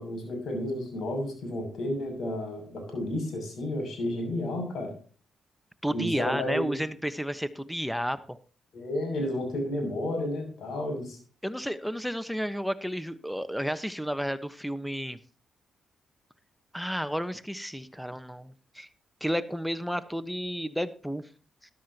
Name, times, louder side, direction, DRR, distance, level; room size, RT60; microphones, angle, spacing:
voice 1, 0.0-4.9 5.9-6.8 8.7-11.2, left 1 dB, 65° left, 4 dB, 7.1 m, -32 dB
voice 2, 5.8-8.4 11.4-15.2 16.7-18.9 19.2-21.2, equal, ahead, 13 dB, 1.2 m, -32 dB
13.5 x 12.0 x 2.9 m, 0.39 s
supercardioid pair, 45°, 0 cm